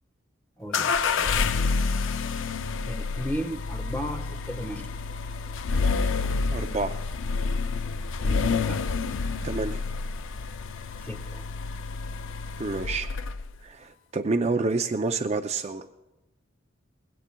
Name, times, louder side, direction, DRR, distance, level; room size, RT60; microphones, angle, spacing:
voice 1, 0.6-1.5 2.9-4.9 8.2-8.8 11.0-11.4, equal, 10° left, 4 dB, 1.2 m, -35 dB
sound 1, 0.7-13.6, left 4 dB, 75° left, 0.5 m, -29 dB
voice 2, 6.5-7.0 9.4-9.8 12.6-13.1 13.6-15.9, right 3 dB, 35° right, 7 dB, 0.5 m, -28 dB
21.0 x 16.5 x 2.3 m, 1.0 s
head